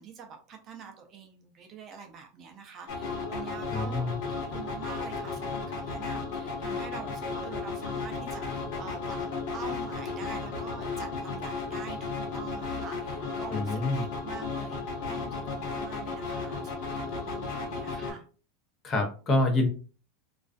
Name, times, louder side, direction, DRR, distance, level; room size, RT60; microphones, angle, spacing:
voice 1, 0.0-18.2, right 6 dB, 30° right, 3 dB, 0.4 m, -46 dB
sound 1, 2.9-18.1, left 4 dB, 60° left, 0.9 m, -34 dB
voice 2, 3.7-4.2 13.5-14.0 18.8-19.7, left 2 dB, 25° left, 3 dB, 0.6 m, -26 dB
2.4 x 2.2 x 2.3 m, 0.37 s
supercardioid pair, 155°, 0 cm